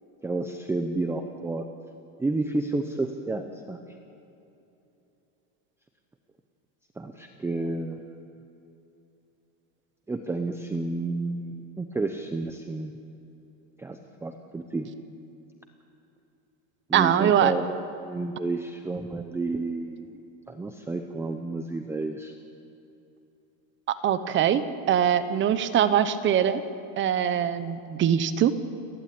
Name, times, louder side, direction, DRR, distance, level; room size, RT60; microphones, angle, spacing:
voice 1, 0.2-1.6 2.2-3.8 7.0-8.2 10.1-12.9 13.8-14.9 16.9-20.2 20.5-22.3, right 2 dB, 5° right, 5 dB, 0.7 m, -31 dB
voice 2, 16.9-17.5 23.9-24.6 24.9-26.6 27.0-28.5, right 9 dB, 30° right, 12 dB, 1.0 m, -22 dB
29.5 x 11.5 x 8.7 m, 2.9 s
cardioid pair, 155°, 41 cm